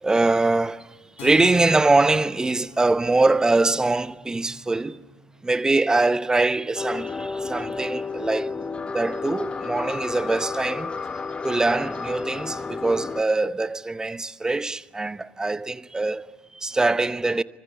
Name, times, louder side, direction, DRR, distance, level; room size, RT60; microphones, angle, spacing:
voice 1, 0.0-5.0 5.4-8.5 8.9-10.9 11.4-17.4, right 2 dB, 15° right, 0.9 m, -23 dB
Keyboard (musical), 1.2-8.5, left 2 dB, 55° left, 4.1 m, -46 dB
sound 1, 6.8-13.2, left 4 dB, 25° left, 1.2 m, -31 dB
28.0 x 25.0 x 8.1 m
figure-of-eight pair, 55°, 5 cm